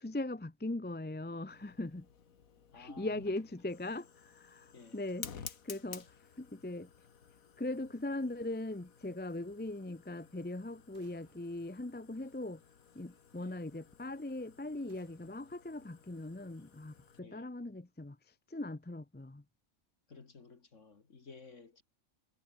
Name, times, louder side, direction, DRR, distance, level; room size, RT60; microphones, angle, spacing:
voice 1, 0.0-2.1 2.7-6.9 7.6-12.6 12.9-18.2 18.5-19.4, left 2 dB, 10° left, 0.5 m, -40 dB
Fire, 1.5-17.2, left 7 dB, 80° left, 1.9 m, -54 dB
voice 2, 2.7-3.3 4.7-5.0 13.4-13.6 17.2-17.5 20.1-21.8, left 4 dB, 60° left, 2.3 m, -54 dB
sound 1, 10.9-12.7 14.9-16.7, right 2 dB, 40° right, 4.8 m, -71 dB
omnidirectional pair, 1.4 m